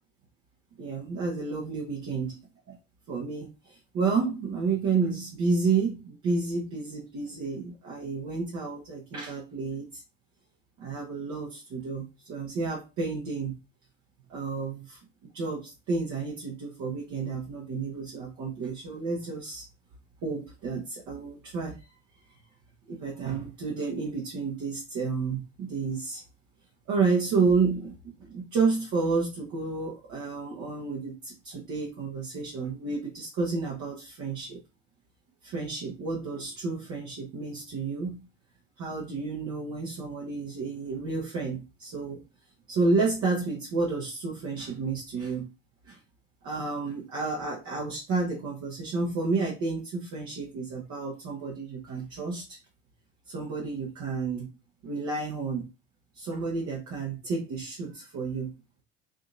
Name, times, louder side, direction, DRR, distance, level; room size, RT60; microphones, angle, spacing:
voice 1, 0.8-2.3 2.7-2.8 3.1-10.0 10.8-13.5 14.3-15.0 15.3-19.6 20.2-21.8 22.9-26.2 26.9-34.6 35.4-38.3 38.8-42.2 42.7-45.5 45.9-46.0 46.4-52.6 53.3-54.5 54.8-55.7 56.2-58.5, right 4 dB, 50° right, -2 dB, 1.2 m, -30 dB
4.8 x 2.9 x 2.6 m, 0.27 s
figure-of-eight pair, 55°, 37 cm